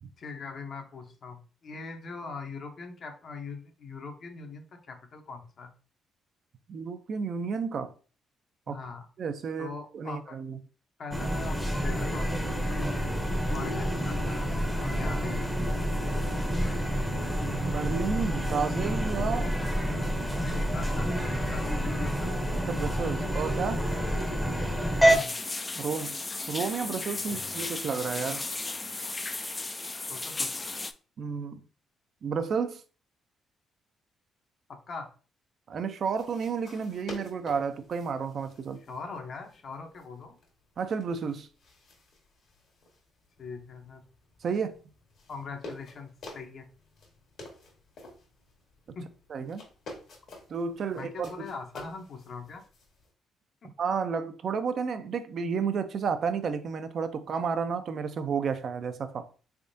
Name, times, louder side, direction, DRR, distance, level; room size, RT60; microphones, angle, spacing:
voice 1, 0.2-5.7 8.7-9.1 9.6-10.4 11.0-12.9 13.4-15.6 20.4-22.5 25.0-25.3 27.3-27.4 30.1-30.7 34.7-35.1 38.9-40.4 43.4-44.0 45.3-46.7 48.9-49.1 51.0-52.6 53.6-53.7, left 4 dB, 55° left, 0.8 m, -41 dB
voice 2, 6.7-7.9 8.7-8.8 9.2-10.6 17.5-19.5 22.6-23.8 25.8-26.2 26.5-28.4 31.2-31.6 32.2-32.8 35.7-38.8 40.8-41.5 44.4-44.7 49.3-49.6 50.5-51.5 53.8-59.3, right 5 dB, 55° right, 0.5 m, -31 dB
sound 1, 11.1-25.2, equal, 5° left, 0.7 m, -28 dB
sound 2, 25.1-30.9, left 3 dB, 25° left, 0.3 m, -35 dB
sound 3, 36.1-53.1, left 1 dB, 70° left, 1.4 m, -50 dB
3.5 x 3.5 x 2.6 m
cardioid pair, 90°, 0 cm